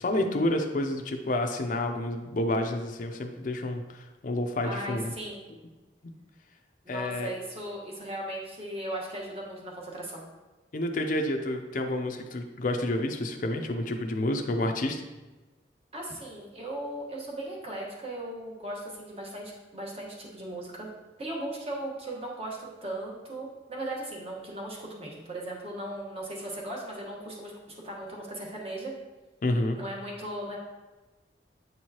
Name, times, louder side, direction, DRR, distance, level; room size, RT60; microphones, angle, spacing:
voice 1, 0.0-5.1 6.0-6.1 6.9-7.3 10.7-15.0 29.4-29.8, left 1 dB, 45° left, 4 dB, 0.5 m, -29 dB
voice 2, 4.6-5.4 6.8-10.2 15.9-20.9 21.2-28.9 29.7-30.6, right 1 dB, 35° right, -2 dB, 1.3 m, -37 dB
8.0 x 4.6 x 2.9 m, 1.2 s
head